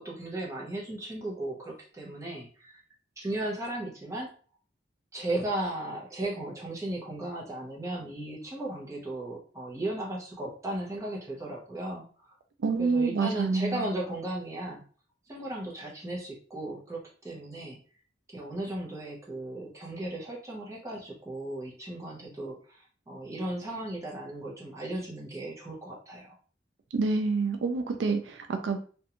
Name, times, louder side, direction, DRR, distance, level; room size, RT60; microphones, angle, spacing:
voice 1, 0.0-2.8 3.2-4.3 5.1-12.4 12.8-14.8 15.3-17.8 18.3-26.3, right 1 dB, 15° right, -3 dB, 0.6 m, -36 dB
voice 2, 12.6-13.8 26.9-28.8, right 4 dB, 75° right, 6 dB, 0.3 m, -27 dB
2.4 x 2.2 x 2.8 m, 0.41 s
head